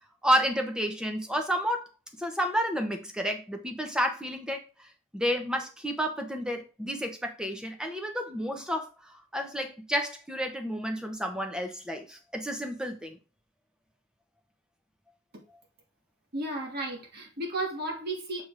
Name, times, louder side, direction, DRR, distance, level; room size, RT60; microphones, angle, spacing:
voice 1, 0.2-1.8 2.2-4.6 5.1-13.2, equal, 5° right, 0.9 m, -30 dB
voice 2, 16.3-18.4, right 2 dB, 50° right, 1.9 m, -33 dB
6.5 x 3.6 x 4.8 m
head